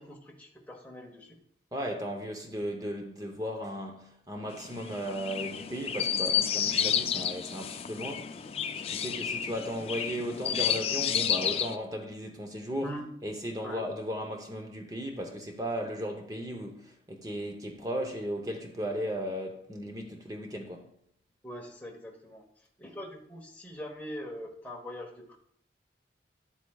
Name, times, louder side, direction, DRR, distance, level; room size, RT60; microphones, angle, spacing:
voice 1, 0.0-1.4 12.8-13.0 13.6-13.8 21.4-22.5 22.8-25.4, equal, 10° left, 1.1 m, -42 dB
voice 2, 1.7-8.4 8.9-12.9 13.2-20.9, equal, 20° right, 0.8 m, -36 dB
Chirp tweet, 4.5-11.8, left 8 dB, 35° left, 0.3 m, -31 dB
10.0 x 8.1 x 2.3 m
head